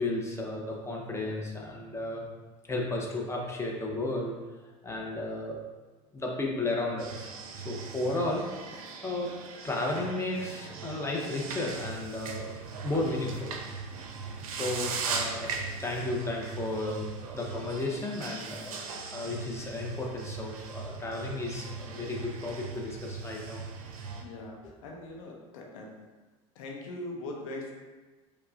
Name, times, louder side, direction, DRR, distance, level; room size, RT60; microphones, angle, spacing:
voice 1, 0.0-2.3 2.6-4.3 4.8-5.6 6.1-8.5 9.0-9.3 9.6-12.5 12.8-13.6 14.4-15.5 15.8-17.1 17.3-18.8 19.1-23.7 24.0-24.1, left 2 dB, 15° left, -1 dB, 0.7 m, -33 dB
sound 1, 7.0-24.2, right 5 dB, 85° right, 0.4 m, -39 dB
voice 2, 24.2-25.9 26.6-27.7, left 2 dB, 75° left, -1 dB, 0.7 m, -41 dB
4.5 x 2.2 x 2.5 m, 1.2 s
hypercardioid pair, 75°, 18 cm